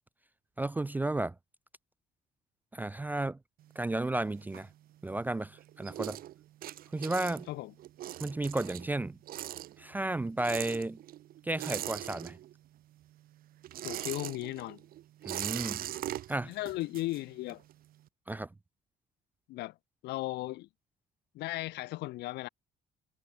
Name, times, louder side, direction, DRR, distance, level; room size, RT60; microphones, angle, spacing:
voice 1, 0.6-1.3 2.7-3.4 3.8-4.7 5.0-6.2 6.9-7.5 8.2-9.2 9.8-11.0 11.4-12.4 15.3-15.8 16.3-16.5 18.3-18.5, right 2 dB, 10° right, 0.4 m, -33 dB
sound 1, 3.6-5.2 5.5-12.8 13.0-17.7, right 13 dB, 60° right, 0.8 m, -41 dB
voice 2, 13.8-14.8 16.4-17.6 19.5-19.8 20.0-20.7 21.3-22.5, left 18 dB, 80° left, 1.1 m, -36 dB
cardioid pair, 110°, 17 cm